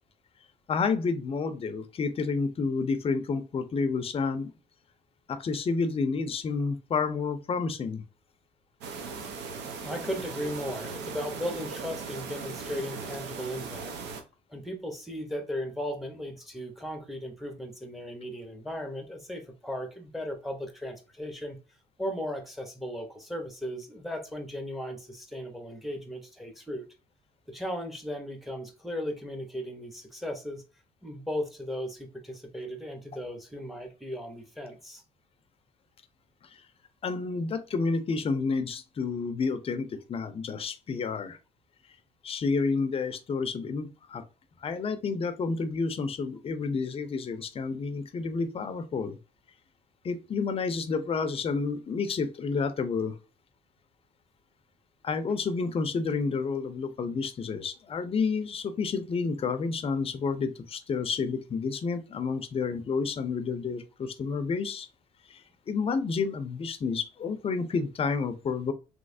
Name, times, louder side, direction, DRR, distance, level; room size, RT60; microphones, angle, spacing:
voice 1, 0.7-4.5 5.3-8.0 37.0-41.4 42.2-44.2 44.6-49.2 50.0-53.2 55.0-64.9 65.3-68.7, left 4 dB, 35° left, 0.5 m, -30 dB
sound 1, 8.8-14.2, right 4 dB, 85° right, 0.7 m, -38 dB
voice 2, 9.8-14.0 14.5-21.6 22.0-26.8 27.5-30.6 31.0-35.0, equal, ahead, 0.8 m, -36 dB
3.1 x 3.1 x 2.6 m
cardioid pair, 110°, 17 cm